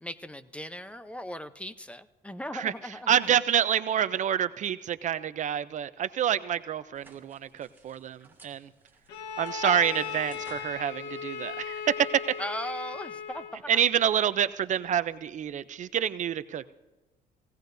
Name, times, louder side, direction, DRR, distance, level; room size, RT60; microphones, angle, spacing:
voice 1, 0.0-3.2 9.6-9.8 12.4-13.7, equal, 5° left, 12 dB, 0.7 m, -38 dB
voice 2, 3.1-8.7 9.4-12.4 13.7-16.7, right 9 dB, 45° right, 14 dB, 0.5 m, -27 dB
sound 1, 6.9-12.2, right 3 dB, 10° right, 2.4 m, -57 dB
Bowed string instrument, 9.1-13.7, left 6 dB, 90° left, 1.2 m, -37 dB
19.0 x 17.0 x 2.6 m, 1.1 s
cardioid pair, 110°, 17 cm